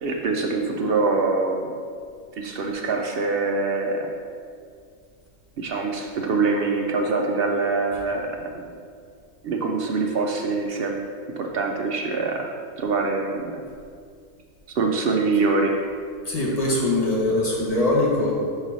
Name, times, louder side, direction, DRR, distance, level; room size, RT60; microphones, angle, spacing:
voice 1, 0.0-1.7 2.4-4.1 5.6-8.7 9.4-11.0 11.4-13.6 14.8-15.8, right 3 dB, 65° right, 1 dB, 0.6 m, -24 dB
voice 2, 16.2-18.3, left 2 dB, 30° left, -3 dB, 1.0 m, -22 dB
4.8 x 4.6 x 5.4 m, 2.2 s
omnidirectional pair, 1.5 m